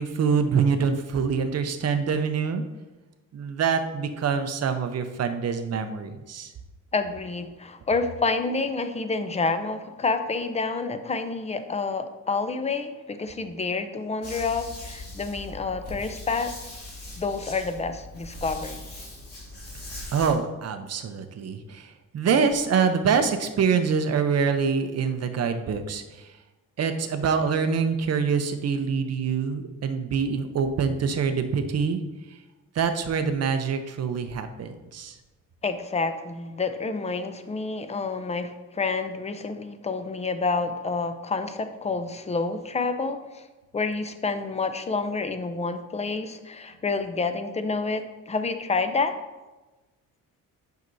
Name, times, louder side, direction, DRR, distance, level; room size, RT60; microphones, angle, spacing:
voice 1, 0.0-2.6 3.3-6.5 20.1-26.3 26.8-32.0 32.7-35.1, right 6 dB, 50° right, 8 dB, 0.7 m, -25 dB
voice 2, 6.9-16.5 17.2-18.8 35.6-43.4 43.7-49.1, left 4 dB, 20° left, 9 dB, 0.5 m, -28 dB
sound 1, 14.2-20.3, left 1 dB, 45° left, 2.4 m, -40 dB
9.3 x 5.7 x 2.6 m, 1.1 s
cardioid pair, 120°, 34 cm